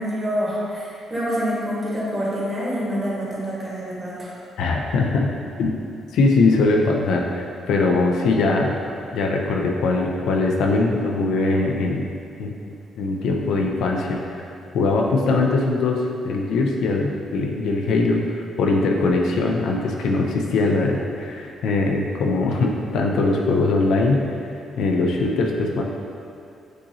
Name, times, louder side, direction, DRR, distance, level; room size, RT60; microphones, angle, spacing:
voice 1, 0.0-4.3, equal, 25° right, -7 dB, 1.5 m, -26 dB
voice 2, 4.6-5.8 6.1-8.8 9.1-12.1 12.4-14.4 14.7-16.0 16.2-24.3 24.8-25.8, left 3 dB, 80° left, 0 dB, 0.4 m, -21 dB
6.1 x 2.9 x 2.7 m, 2.5 s
cardioid pair, 90°, 0 cm